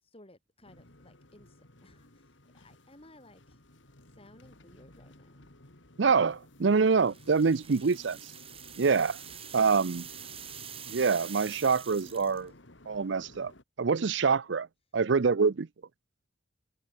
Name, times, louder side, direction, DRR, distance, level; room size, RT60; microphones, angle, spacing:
voice 1, 0.0-3.6 4.1-5.7 10.1-10.5 11.9-12.5, left 1 dB, 30° left, 5.9 m, -58 dB
sound 1, 0.6-13.6, left 1 dB, 70° left, 3.2 m, -55 dB
voice 2, 6.0-8.3 8.8-9.2 9.5-10.1 10.9-12.5 12.9-13.5 13.8-14.7 14.9-15.7, right 5 dB, 65° right, 0.5 m, -25 dB
sound 2, 6.9-12.5, right 9 dB, 30° right, 2.0 m, -45 dB
head